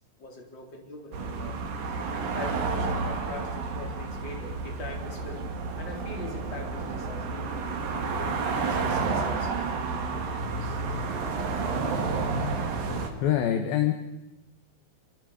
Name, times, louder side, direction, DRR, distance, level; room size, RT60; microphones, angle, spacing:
voice 1, 0.2-1.6 2.3-5.5 5.8-7.5 8.1-10.8 11.4-11.5, left 2 dB, 25° left, 1 dB, 3.9 m, -42 dB
sound 1, 1.1-13.1, right 4 dB, 50° right, 3.5 m, -30 dB
voice 2, 13.2-13.9, left 11 dB, 70° left, 7 dB, 2.4 m, -24 dB
28.0 x 25.5 x 5.1 m, 0.94 s
omnidirectional pair, 5.7 m